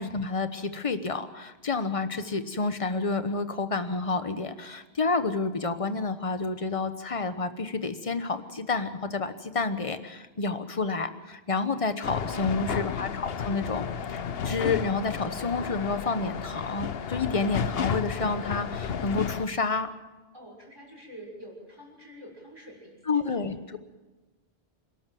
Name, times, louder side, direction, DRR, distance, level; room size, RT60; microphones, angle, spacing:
voice 1, 0.0-19.9 23.1-23.8, left 4 dB, 35° left, 10 dB, 1.2 m, -29 dB
sound 1, 12.0-19.5, left 7 dB, 70° left, 1.0 m, -32 dB
voice 2, 12.2-12.7 20.3-23.2, equal, 25° right, -1 dB, 6.2 m, -46 dB
27.5 x 12.5 x 7.6 m, 1.2 s
omnidirectional pair, 1.1 m